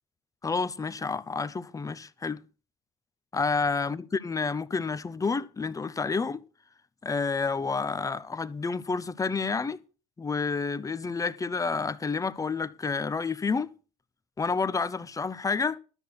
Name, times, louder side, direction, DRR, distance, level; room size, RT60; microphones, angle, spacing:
voice 1, 0.4-2.4 3.3-6.4 7.0-9.8 10.2-13.7 14.4-15.8, left 4 dB, 20° left, 0.8 m, -29 dB
12.5 x 6.4 x 7.0 m
hypercardioid pair, 80°, 18 cm